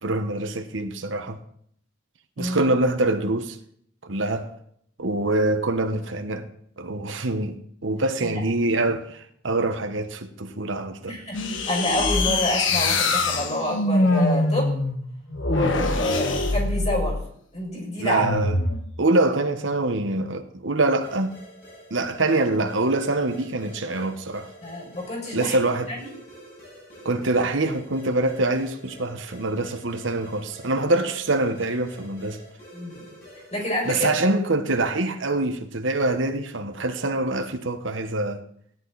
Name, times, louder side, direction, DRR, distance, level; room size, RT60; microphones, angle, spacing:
voice 1, 0.0-1.4 2.4-3.6 4.0-4.5 5.0-6.5 6.8-11.2 18.0-18.6 19.0-21.4 21.9-24.5 25.3-25.9 27.0-32.4 33.8-38.4, right 2 dB, 70° right, 1.2 m, -25 dB
sound 1, 11.3-17.3 18.2-18.8, left 2 dB, 70° left, 1.3 m, -23 dB
voice 2, 11.7-14.8 15.4-17.2 17.5-18.2 24.6-25.6 25.9-26.1 32.7-33.0 33.5-34.1, equal, 35° left, 6.4 m, -28 dB
sound 2, 21.0-34.3, equal, 50° left, 7.5 m, -47 dB
17.0 x 10.5 x 4.1 m
head